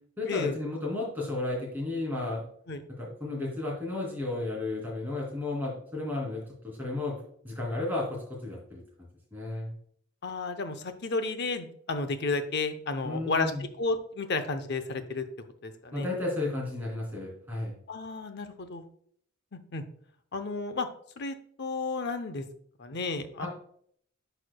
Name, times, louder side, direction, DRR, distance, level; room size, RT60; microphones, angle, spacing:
voice 1, 0.2-2.5 3.0-7.2 7.4-8.8 9.3-9.7 13.0-13.6 15.9-17.7 23.4-23.5, left 2 dB, 10° right, -5 dB, 2.6 m, -33 dB
voice 2, 10.2-15.2 15.6-16.1 17.9-18.8 19.5-19.8 20.3-20.9 21.2-22.4 22.8-23.5, left 3 dB, 50° left, 9 dB, 0.7 m, -32 dB
11.0 x 4.4 x 2.2 m, 0.63 s
head